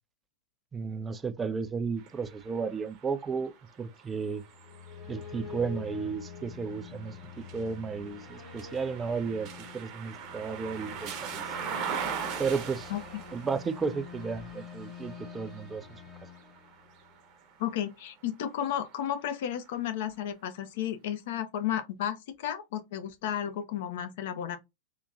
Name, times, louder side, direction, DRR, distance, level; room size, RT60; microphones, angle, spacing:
voice 1, 0.7-3.5 3.8-4.4 5.1-11.4 12.4-12.9 13.3-16.0, right 5 dB, 15° right, 0.4 m, -33 dB
sound 1, 2.0-17.9 18.5-19.7, right 7 dB, 40° right, 0.8 m, -42 dB
sound 2, 4.5-17.3, left 7 dB, 15° left, 1.1 m, -46 dB
voice 2, 12.9-13.2 17.6-24.6, left 10 dB, 55° left, 0.7 m, -33 dB
3.7 x 2.7 x 2.3 m
figure-of-eight pair, 90°, 0 cm